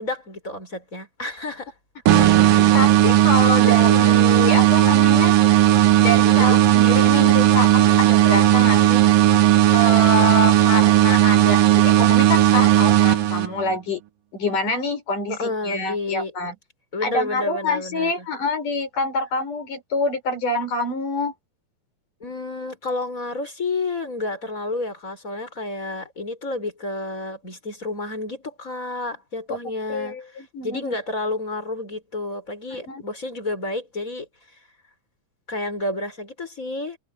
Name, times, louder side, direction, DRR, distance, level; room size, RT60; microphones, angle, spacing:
voice 1, 0.0-1.7 3.6-4.3 6.2-6.6 15.3-16.3 16.9-18.3 22.2-34.3 35.5-37.0, left 2 dB, 25° left, 5.6 m, -30 dB
sound 1, 2.1-13.8, right 13 dB, 80° right, 3.1 m, -15 dB
voice 2, 2.7-5.4 6.0-9.0 9.7-14.0 14.3-16.5 17.0-21.3 29.5-29.6 29.9-31.0 32.7-33.0, left 2 dB, 70° left, 8.2 m, -26 dB
omnidirectional pair, 3.8 m